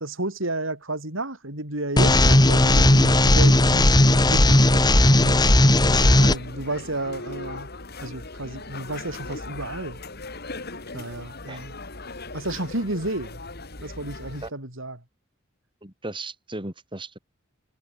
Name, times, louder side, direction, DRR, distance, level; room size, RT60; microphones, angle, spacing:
voice 1, 0.0-5.6 6.2-7.7 8.0-10.0 10.9-11.7 12.3-13.4 13.8-15.0, right 1 dB, 80° right, 7.6 m, -32 dB
sound 1, 2.0-6.4, left 1 dB, 20° left, 1.7 m, -16 dB
sound 2, 5.9-14.5, left 3 dB, 55° left, 4.7 m, -38 dB
voice 2, 15.8-17.2, right 2 dB, 25° right, 5.9 m, -36 dB
head